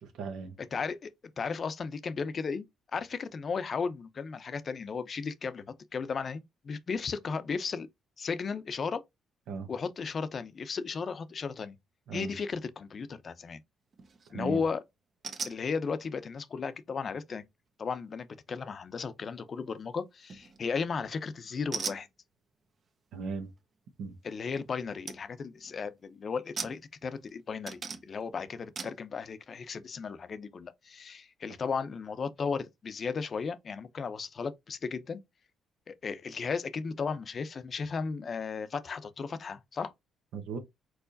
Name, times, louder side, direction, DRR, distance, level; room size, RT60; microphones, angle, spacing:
voice 1, 0.0-0.6 9.5-9.7 12.1-12.3 14.3-14.6 23.1-23.5 24.0-24.2 40.3-40.6, right 4 dB, 80° right, 1.2 m, -37 dB
voice 2, 0.7-2.7 2.9-7.9 8.2-9.0 9.7-11.8 12.1-13.6 14.3-14.8 15.4-17.4 17.8-22.1 24.2-35.2 35.9-39.9, left 5 dB, 45° left, 0.7 m, -35 dB
sound 1, 13.9-14.3 15.2-15.6 20.3-20.7 21.7-22.1 24.5-24.6 25.1-25.2 25.6-25.9 26.6-27.3 27.7-28.2 28.8-29.0, right 5 dB, 50° right, 1.0 m, -39 dB
4.6 x 4.2 x 2.6 m
cardioid pair, 90°, 0 cm